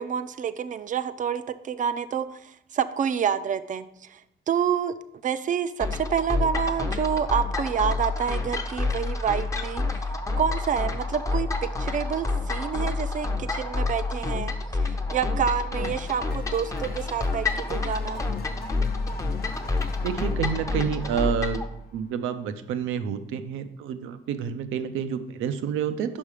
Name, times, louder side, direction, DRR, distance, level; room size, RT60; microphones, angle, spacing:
voice 1, 0.0-4.2 4.5-4.9 5.2-9.8 10.4-14.5 14.8-18.2, right 8 dB, 40° right, 13 dB, 0.4 m, -28 dB
sound 1, 5.8-21.6, left 3 dB, 15° left, 0.7 m, -28 dB
sound 2, 15.8-22.6, left 5 dB, 50° left, 0.7 m, -44 dB
voice 2, 20.0-21.6 21.9-26.2, right 8 dB, 90° right, 10 dB, 0.6 m, -29 dB
5.4 x 5.3 x 4.8 m, 0.80 s
cardioid pair, 90°, 20 cm